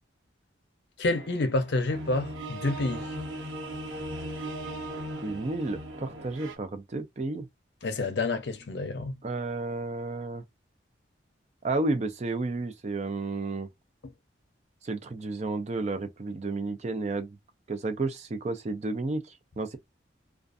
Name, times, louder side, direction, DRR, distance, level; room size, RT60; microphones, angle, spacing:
voice 1, 1.0-3.0 7.8-9.1, left 2 dB, 60° left, 0.6 m, -28 dB
sound 1, 1.1-6.5, right 1 dB, 85° right, 1.0 m, -38 dB
voice 2, 5.2-7.5 9.2-10.4 11.6-13.7 14.8-17.4 17.7-19.8, right 3 dB, 35° right, 0.4 m, -32 dB
2.5 x 2.3 x 2.4 m
head